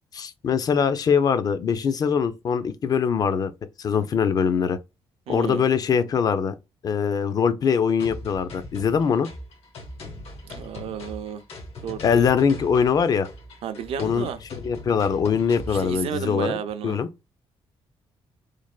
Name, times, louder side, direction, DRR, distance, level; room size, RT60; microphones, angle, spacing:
voice 1, 0.1-3.5 3.8-4.8 5.3-6.5 6.8-9.3 12.0-13.3 14.0-16.6 16.8-17.1, left 6 dB, 40° left, 0.4 m, -22 dB
voice 2, 5.3-5.6 10.4-11.4 11.8-12.3 13.6-14.4 15.7-17.0, right 8 dB, 70° right, 0.4 m, -32 dB
sound 1, 8.0-16.0, left 2 dB, 75° left, 1.0 m, -40 dB
3.2 x 2.1 x 2.3 m
cardioid pair, 145°, 10 cm